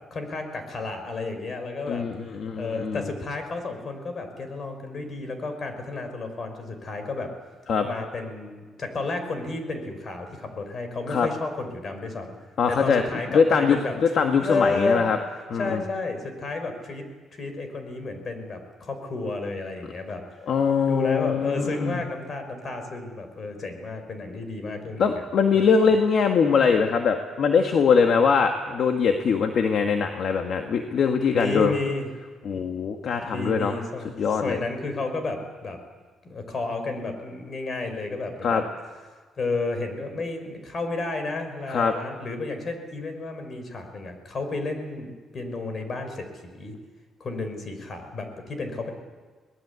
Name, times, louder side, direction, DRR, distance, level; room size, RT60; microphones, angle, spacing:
voice 1, 0.1-2.1 2.6-7.3 7.8-12.3 12.7-15.0 15.5-17.1 17.3-20.2 20.8-25.2 25.5-26.0 31.3-32.1 33.1-35.8 36.2-38.6 39.4-46.7 47.2-48.9, left 3 dB, 45° left, 7 dB, 5.0 m, -32 dB
voice 2, 1.9-3.0 7.7-7.9 11.1-11.3 12.6-13.0 13.3-15.2 15.5-15.8 20.5-22.0 25.0-31.7 32.4-33.7 34.2-34.6 38.4-38.6 41.7-41.9, left 6 dB, 60° left, 5 dB, 1.7 m, -22 dB
23.0 x 19.5 x 8.3 m, 1.4 s
cardioid pair, 90°, 0 cm